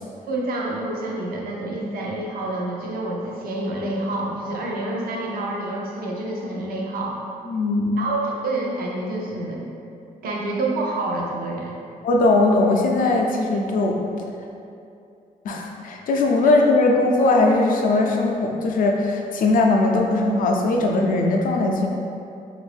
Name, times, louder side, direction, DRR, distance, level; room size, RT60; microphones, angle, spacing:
voice 1, 0.3-7.2 8.0-9.6 10.2-11.8, right 2 dB, 85° right, -2 dB, 0.5 m, -28 dB
voice 2, 7.5-8.0 12.0-14.1 15.4-21.9, left 2 dB, 65° left, 1 dB, 0.4 m, -19 dB
2.9 x 2.5 x 3.2 m, 2.6 s
wide cardioid pair, 165°, 15 cm